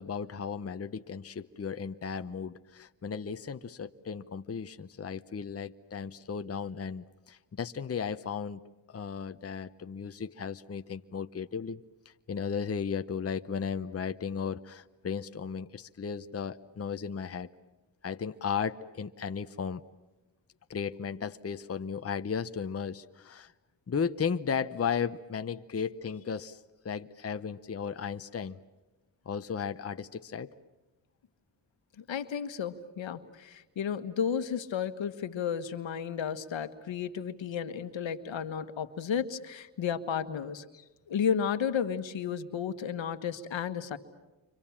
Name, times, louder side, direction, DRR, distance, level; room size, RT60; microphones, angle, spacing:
voice 1, 0.0-8.6 8.9-11.8 12.0-17.5 18.0-19.8 20.7-23.5 23.9-28.6 29.3-30.5, left 6 dB, 30° left, 9 dB, 0.9 m, -35 dB
voice 2, 32.0-40.6 41.1-44.0, left 7 dB, 75° left, 9 dB, 1.6 m, -33 dB
30.0 x 25.5 x 7.3 m, 1.1 s
cardioid pair, 70°, 46 cm